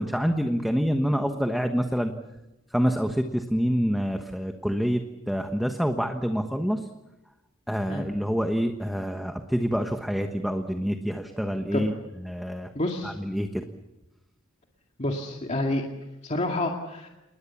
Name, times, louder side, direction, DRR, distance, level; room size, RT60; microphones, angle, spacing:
voice 1, 0.0-2.1 2.7-6.8 7.7-11.9 12.3-12.7 13.0-13.6, equal, ahead, 5 dB, 1.2 m, -27 dB
voice 2, 12.7-13.1 15.0-15.8 16.2-17.1, left 1 dB, 35° left, 1 dB, 2.2 m, -28 dB
28.5 x 21.0 x 7.2 m, 0.98 s
head